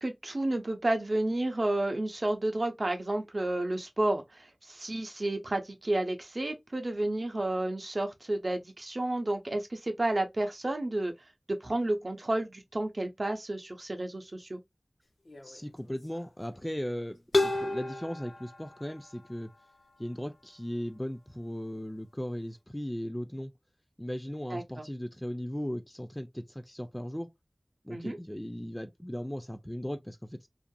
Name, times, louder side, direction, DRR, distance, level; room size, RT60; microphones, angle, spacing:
voice 1, 0.0-11.1 11.6-14.6 24.5-24.9 27.9-28.2, right 1 dB, 55° right, 0.7 m, -31 dB
sound 1, 15.3-15.6 15.8-16.2 17.3-19.5, left 2 dB, 65° left, 0.6 m, -32 dB
voice 2, 15.4-19.5 20.0-23.5 24.0-27.3 27.8-30.5, equal, 10° left, 0.3 m, -37 dB
2.7 x 2.5 x 2.2 m
wide cardioid pair, 55°, 0 cm